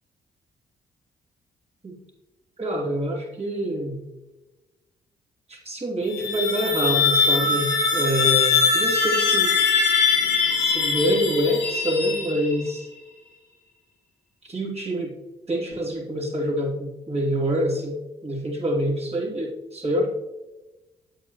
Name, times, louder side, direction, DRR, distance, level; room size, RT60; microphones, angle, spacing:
voice 1, 2.6-4.0 5.5-9.5 10.6-12.9 14.4-15.1 15.5-18.0 18.2-20.1, equal, 30° right, -4 dB, 2.7 m, -26 dB
sound 1, 6.0-12.7, left 5 dB, 55° left, 1.9 m, -22 dB
8.6 x 8.0 x 3.1 m, 1.1 s
hypercardioid pair, 40°, 21 cm